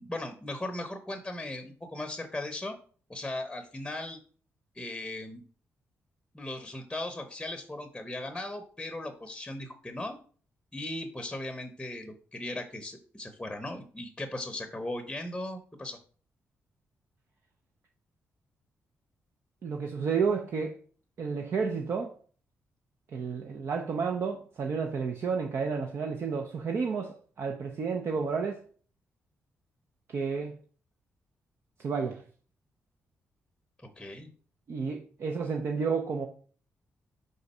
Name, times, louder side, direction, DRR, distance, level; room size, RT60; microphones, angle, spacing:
voice 1, 0.0-2.8 3.1-4.2 4.7-5.4 6.3-10.2 10.7-16.0 34.0-34.3, left 1 dB, 10° left, 0.8 m, -38 dB
voice 2, 19.6-20.7 21.2-22.1 23.1-28.6 30.1-30.5 31.8-32.2 34.7-36.3, right 5 dB, 60° right, 0.7 m, -31 dB
4.9 x 4.0 x 5.4 m
cardioid pair, 105°, 5 cm